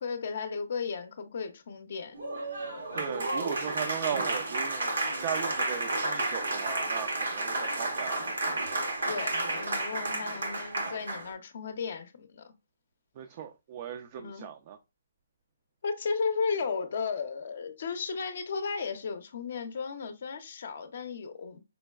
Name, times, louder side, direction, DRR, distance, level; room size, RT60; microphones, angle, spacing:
voice 1, 0.0-2.2 9.1-12.5 14.2-14.5 15.8-21.6, left 5 dB, 55° left, 0.5 m, -34 dB
Applause, 2.1-11.3, right 2 dB, 85° right, 1.0 m, -32 dB
voice 2, 2.9-8.2 13.2-14.8, right 9 dB, 35° right, 0.3 m, -37 dB
5.1 x 2.2 x 2.2 m
hypercardioid pair, 155°, 0 cm